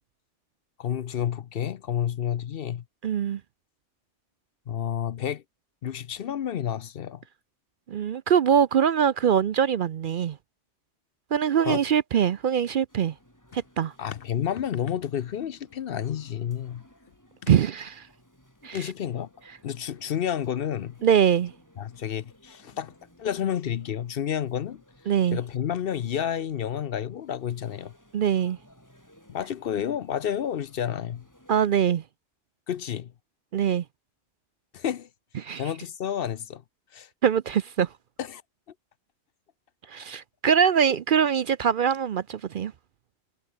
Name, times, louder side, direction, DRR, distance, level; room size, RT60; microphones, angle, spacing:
voice 1, 0.8-2.8 4.7-5.4 5.8-7.2 11.6-11.8 14.0-16.8 17.4-17.5 18.7-19.3 19.6-21.0 21.8-24.8 25.3-27.9 29.3-31.2 32.7-33.1 34.7-35.1 35.6-36.6 36.9-37.1 38.2-38.4, left 9 dB, 60° left, 0.8 m, -30 dB
voice 2, 3.0-3.4 7.9-10.4 11.3-13.1 13.8-13.9 17.5-18.1 18.6-18.8 21.0-21.5 25.1-25.4 28.1-28.6 31.5-32.0 33.5-33.8 35.4-35.6 37.2-37.9 39.9-42.7, right 8 dB, 55° right, 0.7 m, -23 dB
sound 1, 12.9-31.7, equal, 15° left, 6.9 m, -58 dB
omnidirectional pair, 1.2 m